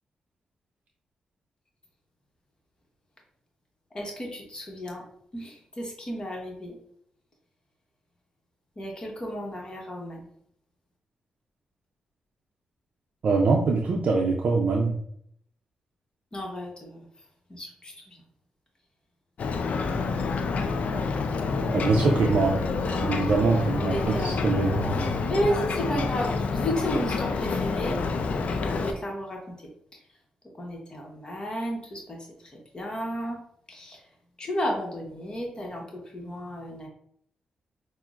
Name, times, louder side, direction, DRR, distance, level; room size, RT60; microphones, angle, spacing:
voice 1, 3.9-5.0 5.3-6.8 8.8-10.3 16.3-17.1 17.5-18.2 21.6-22.2 22.8-23.4 23.7-28.0 28.5-29.7 30.6-33.4 33.7-34.0 34.4-36.9, equal, 35° left, 0 dB, 1.0 m, -33 dB
voice 2, 13.2-14.9 21.7-25.0, right 3 dB, 65° right, 0 dB, 0.5 m, -24 dB
Ocean, 19.4-28.9, left 4 dB, 65° left, 0.4 m, -28 dB
5.6 x 2.1 x 2.4 m, 0.68 s
cardioid pair, 65°, 3 cm